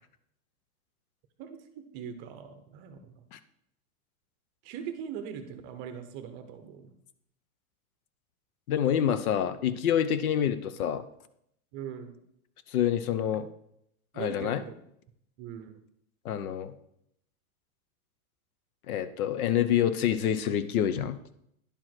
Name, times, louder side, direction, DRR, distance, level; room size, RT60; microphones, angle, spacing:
voice 1, 1.4-3.2 4.6-6.9 11.7-12.2 14.1-14.8 15.4-15.8, right 8 dB, 25° right, 9 dB, 0.7 m, -41 dB
voice 2, 8.7-11.0 12.7-13.5 14.2-14.6 16.2-16.7 18.9-21.2, left 9 dB, 80° left, 13 dB, 0.9 m, -27 dB
10.0 x 4.9 x 5.9 m, 0.74 s
supercardioid pair, 165°, 43 cm